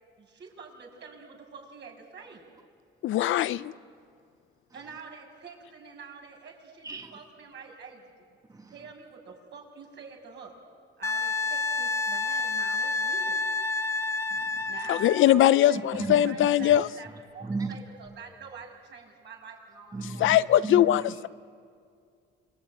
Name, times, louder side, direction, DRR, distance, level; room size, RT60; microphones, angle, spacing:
voice 1, 0.2-2.5 4.7-8.0 8.7-10.6 11.0-13.4 14.6-20.5 21.1-21.3, right 5 dB, 60° right, 1 dB, 6.8 m, -47 dB
voice 2, 3.0-3.7 14.9-16.9 20.2-21.3, left 12 dB, 80° left, 15 dB, 0.7 m, -21 dB
Wind instrument woodwind instrument, 11.0-15.3 18.0-18.1, left 3 dB, 15° left, 1.5 m, -29 dB
voice 3, 14.3-14.6 16.0-16.2 17.4-17.8 19.9-20.4 20.6-21.0, right 4 dB, 15° right, 4 dB, 1.8 m, -34 dB
27.0 x 23.5 x 9.1 m, 2.3 s
cardioid pair, 90°, 20 cm